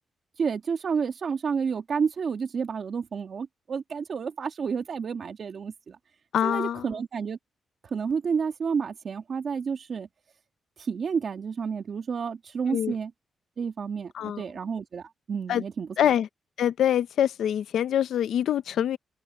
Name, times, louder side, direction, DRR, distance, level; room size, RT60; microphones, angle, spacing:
voice 1, 0.4-6.0 6.4-7.4 7.9-10.1 10.8-13.1 13.6-15.9, right 6 dB, 45° right, 2.2 m, -30 dB
voice 2, 6.3-6.9 12.7-12.9 14.1-14.4 15.5-15.6 16.0-16.3 16.6-19.0, left 10 dB, 80° left, 0.6 m, -25 dB
wide cardioid pair, 150°, 0 cm